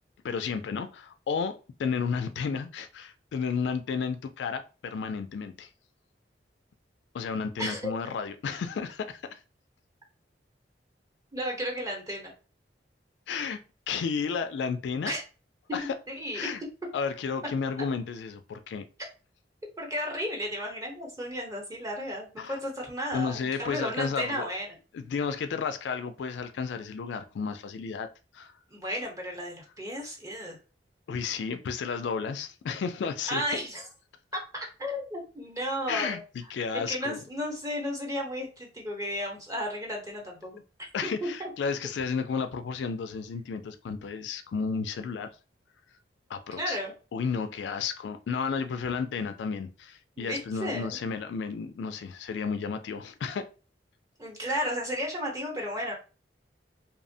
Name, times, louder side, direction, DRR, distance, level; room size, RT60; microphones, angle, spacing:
voice 1, 0.2-5.7 7.1-9.4 13.3-13.6 13.9-15.1 15.7-15.9 16.3-16.6 16.9-18.9 22.4-22.6 23.1-24.5 24.9-28.1 28.3-28.5 31.1-33.6 35.9-36.2 36.5-37.2 40.9-45.3 46.3-46.8 47.1-53.5, left 5 dB, 75° left, 0.3 m, -32 dB
voice 2, 7.6-7.9 11.3-12.3 15.1-15.2 15.7-16.5 19.8-24.8 28.7-30.6 33.3-33.9 34.5-36.2 36.9-40.6 41.0-41.5 46.6-46.9 50.2-51.0 54.2-55.9, equal, 20° right, 0.8 m, -33 dB
2.8 x 2.0 x 2.6 m
head